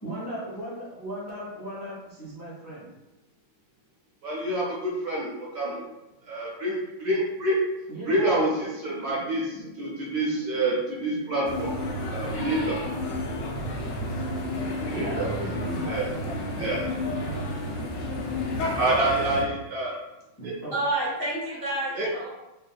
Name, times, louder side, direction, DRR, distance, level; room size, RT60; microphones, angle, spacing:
voice 1, 0.0-2.9 7.9-8.3 14.9-17.4 20.4-20.7, right 1 dB, 20° left, -7 dB, 0.5 m, -37 dB
voice 2, 4.2-5.8 6.2-7.6 8.1-11.8 12.1-12.8 14.8-15.3 15.9-16.1 16.6-16.8 18.7-20.0 20.4-20.5 22.0-22.1, right 1 dB, 65° right, -4 dB, 1.0 m, -27 dB
sound 1, 11.4-19.4, left 1 dB, 70° left, 1.2 m, -31 dB
voice 3, 20.7-22.3, right 1 dB, 85° right, -6 dB, 0.5 m, -29 dB
4.2 x 3.4 x 2.3 m, 0.97 s
omnidirectional pair, 2.3 m